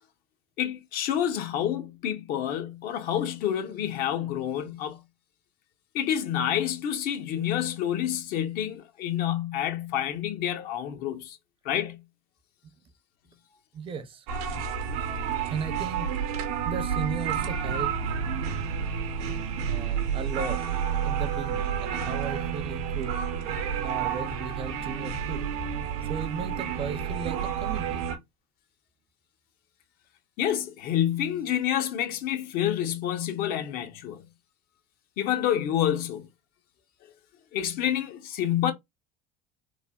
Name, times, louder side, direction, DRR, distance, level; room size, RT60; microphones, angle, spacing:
voice 1, 0.6-5.0 5.9-11.4 11.6-12.0 30.4-34.2 35.2-36.3 37.5-38.7, left 10 dB, 55° left, 0.6 m, -28 dB
voice 2, 13.7-14.2 15.5-16.1 16.6-17.9 19.7-20.6 21.0-23.1 23.8-25.5 26.0-28.0, right 6 dB, 30° right, 0.5 m, -36 dB
sound 1, 14.3-28.2, right 7 dB, 85° right, 0.7 m, -30 dB
3.3 x 2.0 x 2.2 m
supercardioid pair, 125°, 18 cm